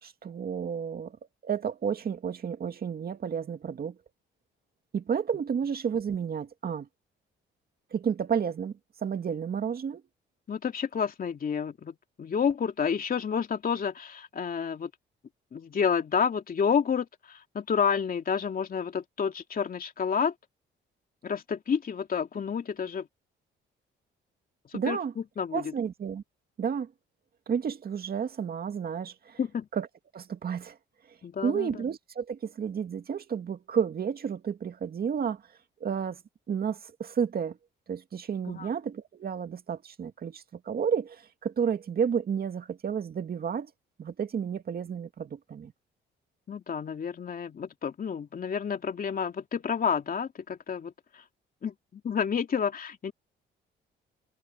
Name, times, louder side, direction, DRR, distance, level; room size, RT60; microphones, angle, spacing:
voice 1, 0.0-1.2 1.4-4.0 4.9-6.9 7.9-10.0 24.7-25.1 25.5-26.2 26.6-26.9 27.5-29.4 29.7-29.9 30.1-30.8 31.1-31.2 31.4-35.4 35.8-36.2 36.5-37.6 37.9-43.7 44.0-45.7, right 7 dB, 50° right, 2.2 m, -31 dB
voice 2, 10.5-14.9 15.5-20.3 21.2-23.1 24.7-25.7 29.4-29.7 31.2-31.8 38.5-38.7 46.5-51.2 51.6-53.1, left 7 dB, 45° left, 2.9 m, -30 dB
cardioid pair, 90°, 20 cm